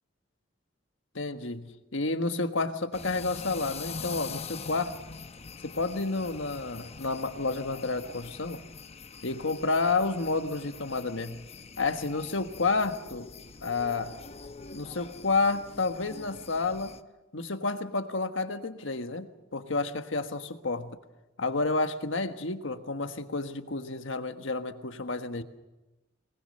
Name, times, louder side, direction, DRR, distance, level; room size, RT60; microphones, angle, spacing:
voice 1, 1.1-5.0 5.6-8.6 9.2-11.5 11.8-13.3 13.6-14.2 14.7-17.0 17.3-19.3 19.5-21.0 21.4-25.4, left 3 dB, 75° left, 8 dB, 1.5 m, -30 dB
sound 1, 2.9-17.0, left 5 dB, 35° left, 0.8 m, -44 dB
23.0 x 20.5 x 6.6 m, 1.0 s
head